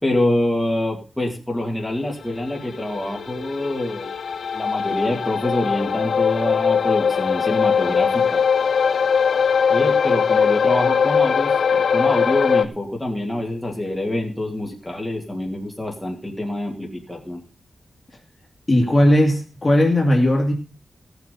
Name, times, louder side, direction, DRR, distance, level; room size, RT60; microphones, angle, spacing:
voice 1, 0.0-4.1 4.5-8.4 9.7-11.5 11.9-17.4, left 1 dB, 5° left, -1 dB, 2.5 m, -25 dB
sound 1, 2.3-12.6, left 6 dB, 85° left, 0.9 m, -20 dB
voice 2, 18.7-20.5, left 1 dB, 25° left, 1 dB, 2.6 m, -17 dB
17.0 x 7.2 x 5.4 m, 0.34 s
wide cardioid pair, 180°, 0 cm